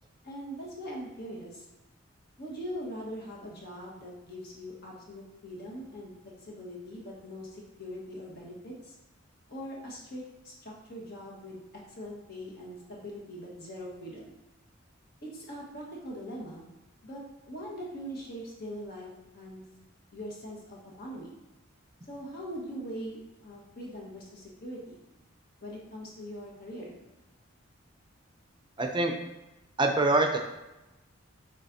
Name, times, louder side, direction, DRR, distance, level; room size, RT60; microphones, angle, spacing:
voice 1, 0.2-1.6 2.4-6.1 6.4-8.9 9.5-11.6 11.9-14.4 15.2-16.7 17.0-19.6 20.1-21.4 22.1-25.0 25.6-26.9, equal, 50° left, -3 dB, 1.5 m, -42 dB
voice 2, 28.8-29.1 29.8-30.4, right 2 dB, 25° right, 4 dB, 0.6 m, -24 dB
7.4 x 4.8 x 2.7 m, 0.99 s
head